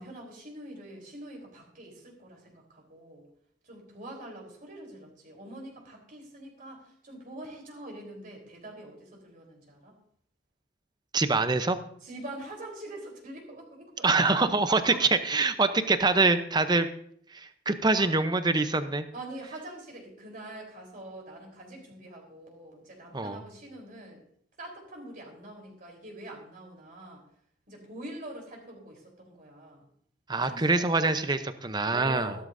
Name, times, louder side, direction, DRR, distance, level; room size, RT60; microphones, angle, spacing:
voice 1, 0.0-3.2 3.6-10.0 12.0-15.1 17.9-18.1 19.1-24.2 24.6-27.2 27.7-29.9 30.3-31.0 31.9-32.4, right 1 dB, 45° right, 0 dB, 3.9 m, -44 dB
voice 2, 11.1-11.8 14.0-16.9 17.3-19.0 23.1-23.4 30.3-32.3, right 3 dB, 20° right, 10 dB, 0.7 m, -25 dB
15.5 x 12.5 x 2.7 m, 0.64 s
head